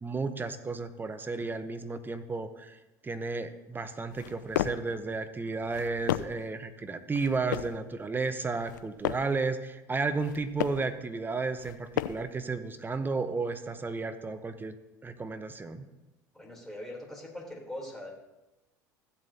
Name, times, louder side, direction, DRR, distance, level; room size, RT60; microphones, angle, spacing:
voice 1, 0.0-2.8 3.0-14.7 15.0-15.9, right 3 dB, 20° right, 10 dB, 1.0 m, -33 dB
sound 1, 4.1-4.9 5.6-6.5 7.1-7.8 8.5-9.4 10.1-10.9 11.6-12.4, left 12 dB, 80° left, 0.4 m, -34 dB
voice 2, 16.3-18.1, left 1 dB, 5° left, -3 dB, 3.7 m, -41 dB
15.5 x 7.6 x 2.9 m, 1.0 s
hypercardioid pair, 70°, 10 cm